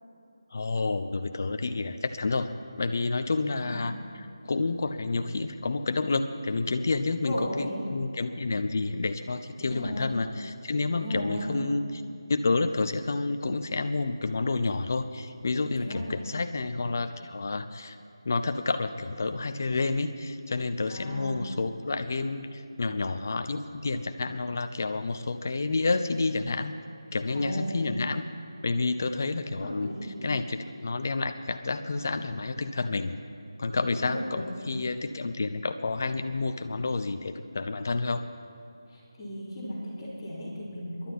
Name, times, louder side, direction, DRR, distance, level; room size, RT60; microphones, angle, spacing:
voice 1, 0.5-2.5 2.8-12.0 12.3-18.0 18.2-26.8 27.1-28.2 28.6-29.9 30.2-33.2 33.6-38.2, left 3 dB, 35° left, 9 dB, 0.7 m, -29 dB
voice 2, 3.5-3.9 7.2-7.7 9.6-10.1 10.9-11.5 15.8-16.0 20.9-21.4 27.3-27.7 29.6-30.1 34.0-34.5 38.9-41.1, equal, 10° left, -11 dB, 3.1 m, -36 dB
28.5 x 11.5 x 4.2 m, 2.7 s
figure-of-eight pair, 175°, 2 cm